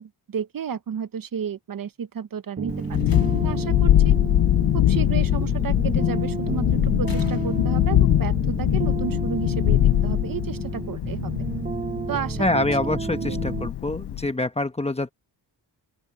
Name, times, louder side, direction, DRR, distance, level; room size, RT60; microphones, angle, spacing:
voice 1, 0.0-3.0 3.4-4.2 4.7-11.3 12.1-12.6 13.2-13.4, right 7 dB, 50° right, 0.9 m, -32 dB
sound 1, 2.6-13.7, right 5 dB, 20° right, 0.3 m, -31 dB
Thunderstorm, 2.7-14.3, left 12 dB, 70° left, 0.6 m, -22 dB
Slam, 2.7-3.7 5.2-5.7 7.0-8.0, left 7 dB, 50° left, 2.3 m, -50 dB
voice 2, 12.4-15.1, left 2 dB, 15° left, 1.1 m, -25 dB
open air
wide cardioid pair, 125°, 44 cm